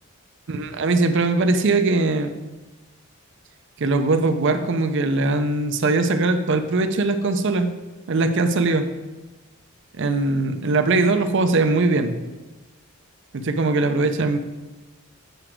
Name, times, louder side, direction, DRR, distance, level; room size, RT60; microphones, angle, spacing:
voice 1, 0.5-2.3 3.8-7.7 8.1-8.8 10.0-12.1 13.3-14.4, right 3 dB, 55° right, 8 dB, 0.5 m, -21 dB
8.0 x 4.9 x 4.5 m, 1.2 s
head